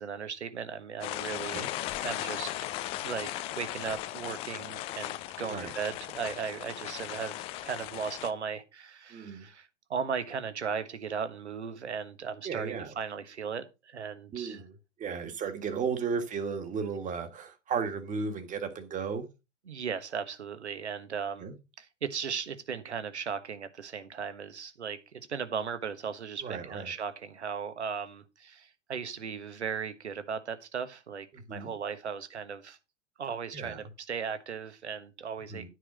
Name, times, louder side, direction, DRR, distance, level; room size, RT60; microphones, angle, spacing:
voice 1, 0.0-1.7 2.0-2.5 3.0-3.3 3.5-14.6 19.6-21.5 21.8-32.8 33.2-35.7, right 6 dB, 70° right, 1.4 m, -37 dB
sound 1, 1.0-8.3, left 14 dB, 15° left, 0.4 m, -37 dB
voice 2, 9.1-9.4 12.4-12.9 14.3-19.2 21.4-21.5 26.4-26.9 31.3-31.7 33.5-33.8 35.5-35.7, right 5 dB, 20° right, 1.7 m, -35 dB
9.7 x 4.9 x 6.1 m
figure-of-eight pair, 95°, 35 cm